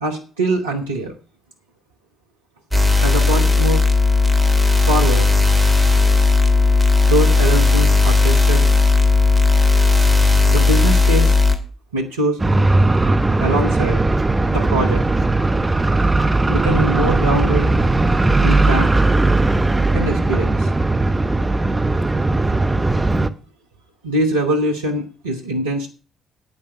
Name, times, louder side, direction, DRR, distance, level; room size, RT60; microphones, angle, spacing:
voice 1, 0.0-1.1 3.0-3.9 4.9-5.3 7.0-8.7 10.4-11.3 11.9-12.4 13.4-14.0 14.5-15.0 16.5-17.7 18.4-18.9 19.9-20.7 24.0-25.9, right 1 dB, 80° right, 1 dB, 1.2 m, -22 dB
sound 1, 2.7-11.6, left 3 dB, ahead, 2.5 m, -15 dB
sound 2, 12.4-23.3, right 2 dB, 15° right, 0.9 m, -17 dB
10.5 x 8.9 x 6.0 m, 0.35 s
figure-of-eight pair, 45°, 0 cm